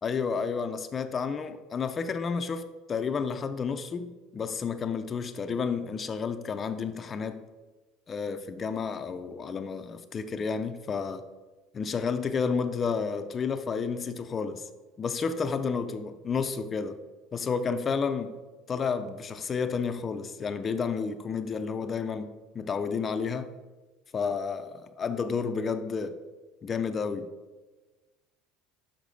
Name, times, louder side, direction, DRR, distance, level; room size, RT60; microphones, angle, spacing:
voice 1, 0.0-7.5 8.1-11.3 11.7-14.6 15.0-17.0 17.3-18.4 18.7-23.5 24.1-26.2 26.6-27.3, left 5 dB, 25° left, 0.4 m, -31 dB
6.4 x 5.8 x 5.1 m
cardioid pair, 140°, 0 cm